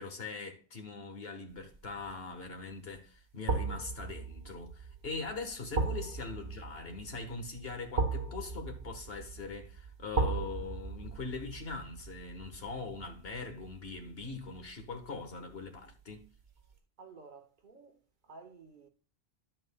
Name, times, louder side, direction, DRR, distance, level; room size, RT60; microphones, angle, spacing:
voice 1, 0.0-16.3, left 4 dB, 70° left, 1.6 m, -42 dB
sound 1, 1.7-2.1 3.5-14.5 14.8-14.9, right 4 dB, 80° right, 1.5 m, -37 dB
voice 2, 17.0-18.9, right 4 dB, 50° right, 1.1 m, -53 dB
11.5 x 7.7 x 2.2 m
omnidirectional pair, 1.0 m